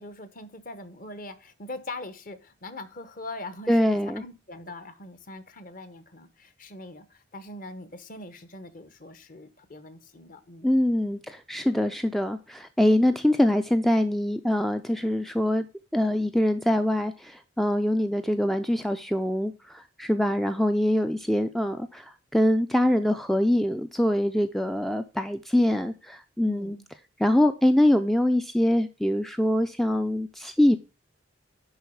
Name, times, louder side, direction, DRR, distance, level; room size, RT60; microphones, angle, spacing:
voice 1, 0.0-10.7 20.1-20.5 26.4-26.9, left 2 dB, 45° left, 1.1 m, -42 dB
voice 2, 3.7-4.2 10.6-15.7 15.9-26.8 27.2-30.8, left 1 dB, ahead, 0.4 m, -24 dB
10.5 x 4.0 x 6.9 m
head